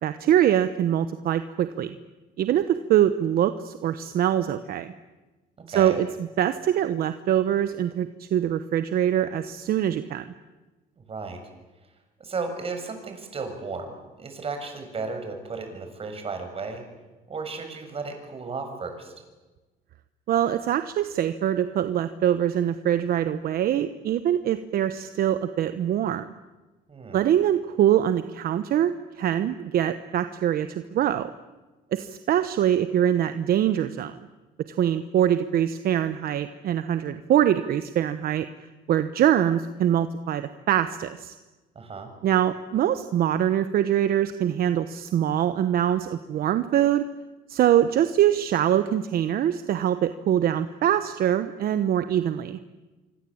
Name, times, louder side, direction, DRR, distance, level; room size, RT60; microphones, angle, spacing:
voice 1, 0.0-1.9 2.4-4.9 5.7-6.1 6.4-10.2 20.3-26.2 27.1-31.3 31.9-34.1 34.8-38.5 38.9-41.3 42.2-47.0 47.5-52.6, right 10 dB, 60° right, 11 dB, 1.2 m, -23 dB
voice 2, 5.6-6.0 11.0-11.4 12.2-16.8 17.3-19.1 26.9-27.2 41.8-42.1, right 4 dB, 35° right, 6 dB, 7.0 m, -34 dB
26.0 x 25.5 x 8.8 m, 1.2 s
cardioid pair, 110°, 17 cm